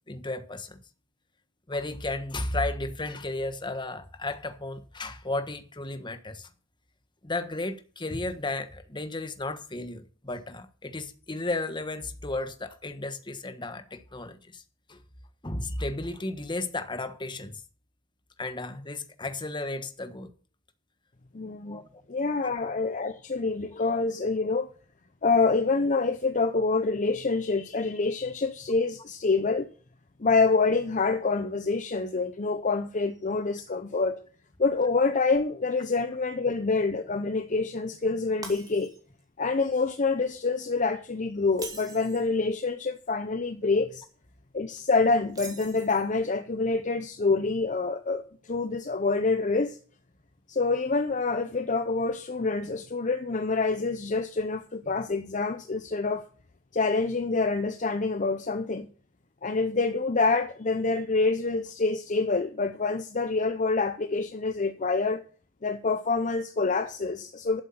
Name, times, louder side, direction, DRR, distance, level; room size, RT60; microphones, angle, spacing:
voice 1, 0.1-0.8 1.7-6.5 7.2-14.6 14.9-15.0 15.4-17.6 18.4-20.3 21.7-21.8 22.4-22.5, left 2 dB, 25° left, 1.3 m, -34 dB
voice 2, 21.3-21.8 22.1-24.7 25.2-29.7 30.2-34.2 34.6-38.9 39.4-44.0 44.5-49.8 50.5-56.2 56.7-58.9 59.4-65.2 65.6-67.6, left 3 dB, 40° left, 0.7 m, -26 dB
Shatter, 38.4-39.2 39.6-39.9 41.5-42.3 45.3-46.2, right 4 dB, 20° right, 2.5 m, -43 dB
12.0 x 8.1 x 5.7 m
head